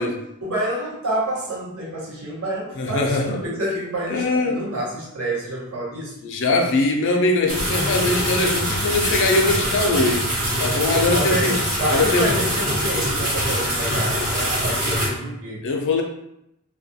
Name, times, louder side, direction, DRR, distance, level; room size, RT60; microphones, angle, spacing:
voice 1, 0.0-6.2 11.1-15.7, right 1 dB, 65° right, -5 dB, 0.9 m, -28 dB
voice 2, 2.8-3.4 4.1-4.6 6.2-10.3 10.6-11.6 11.9-12.3 15.6-16.0, left 2 dB, 55° left, 3 dB, 0.4 m, -21 dB
sound 1, 7.5-15.1, equal, 40° right, 1.0 m, -23 dB
2.3 x 2.2 x 2.6 m, 0.81 s
head